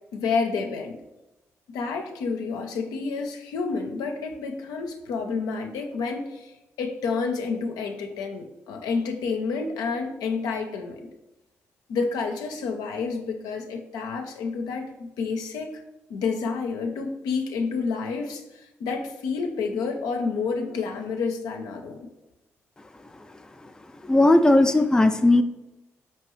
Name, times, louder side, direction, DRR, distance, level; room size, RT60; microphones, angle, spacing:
voice 1, 0.1-1.0 1.7-11.1 11.9-15.8 16.1-22.1, left 4 dB, 75° left, 4 dB, 0.5 m, -29 dB
voice 2, 24.0-25.4, left 2 dB, 10° left, 8 dB, 0.3 m, -17 dB
4.5 x 2.8 x 3.0 m, 0.97 s
hypercardioid pair, 40°, 6 cm